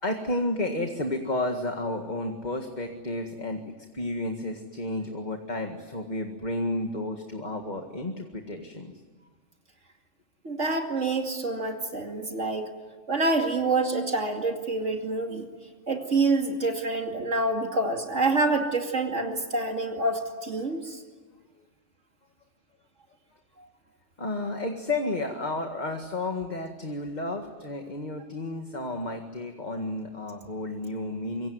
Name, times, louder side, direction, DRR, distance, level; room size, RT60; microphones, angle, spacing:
voice 1, 0.0-3.6 3.9-8.9 24.2-31.5, left 2 dB, 35° left, 4 dB, 2.1 m, -32 dB
voice 2, 10.4-12.7 13.1-15.5 15.9-21.0, right 3 dB, 70° right, 2 dB, 2.9 m, -27 dB
25.5 x 24.0 x 9.6 m, 1.3 s
omnidirectional pair, 1.3 m